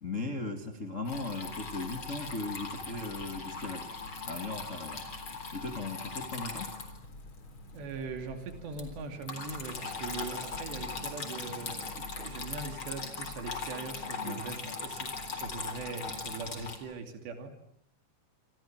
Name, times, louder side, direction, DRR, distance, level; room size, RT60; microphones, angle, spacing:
voice 1, 0.0-3.9 4.2-5.0 5.5-6.8 14.2-14.4, left 2 dB, 90° left, 6 dB, 0.6 m, -37 dB
Water tap faucet / Trickle dribble, 1.0-16.8, left 4 dB, 30° left, 4.1 m, -40 dB
voice 2, 7.7-17.5, right 4 dB, 80° right, 6 dB, 4.8 m, -41 dB
28.0 x 27.0 x 7.4 m, 0.69 s
omnidirectional pair, 4.9 m